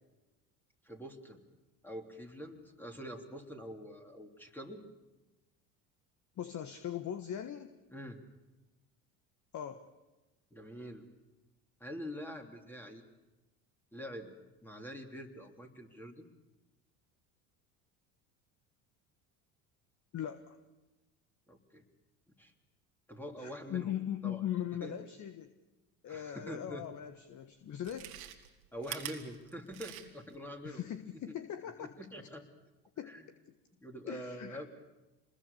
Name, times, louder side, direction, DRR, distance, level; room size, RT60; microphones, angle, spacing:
voice 1, 0.8-1.4 1.8-4.8 7.9-8.2 10.5-11.0 11.8-13.0 13.9-14.3 14.6-16.3 21.5-21.8 22.4-22.5 23.1-23.9 24.2-24.4 24.8-24.9 26.1-26.8 28.7-30.8 31.3-31.4 31.8-32.4 33.1-33.2 33.8-34.7, equal, 5° left, 3 dB, 3.2 m, -45 dB
voice 2, 6.4-7.7 9.5-9.9 20.1-20.6 23.4-25.5 26.0-28.2 30.6-31.9 33.0-33.2 34.1-34.7, left 10 dB, 45° left, 9 dB, 1.4 m, -39 dB
Chewing mastication, 26.9-27.0 27.7-30.4 30.7-30.8, right 12 dB, 85° right, 2.0 m, -45 dB
27.0 x 21.0 x 7.1 m, 1.1 s
hypercardioid pair, 75°, 41 cm